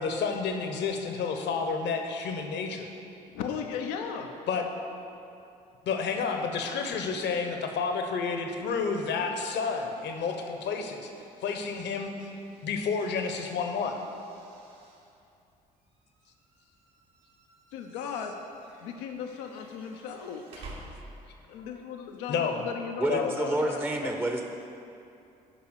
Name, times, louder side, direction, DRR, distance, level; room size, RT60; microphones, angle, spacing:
voice 1, 0.0-2.9 4.5-4.6 5.8-11.1 11.4-12.3 12.6-14.0 21.2-21.3 22.3-22.6 23.1-23.6 24.0-24.1, left 5 dB, 60° left, 5 dB, 1.1 m, -30 dB
voice 2, 3.3-4.4 17.7-18.4 18.8-20.4 21.5-23.3 23.6-23.9, left 7 dB, 75° left, 3 dB, 0.7 m, -36 dB
sound 1, 8.7-21.6, right 2 dB, 70° right, 1.8 m, -53 dB
voice 3, 23.0-24.4, right 1 dB, 10° right, 3 dB, 0.8 m, -28 dB
10.5 x 5.5 x 6.4 m, 2.7 s
hypercardioid pair, 50°, 20 cm